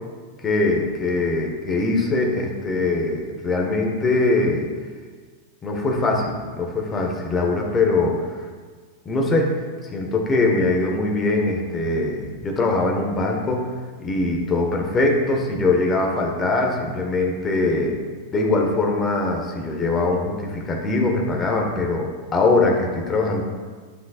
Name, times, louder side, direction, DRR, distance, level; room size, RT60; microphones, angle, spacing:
voice 1, 0.4-4.7 5.6-8.3 9.0-9.5 9.8-13.7 14.0-18.0 18.3-23.4, left 2 dB, 20° left, 1 dB, 1.4 m, -22 dB
10.5 x 6.0 x 2.4 m, 1.5 s
figure-of-eight pair, 90°, 0 cm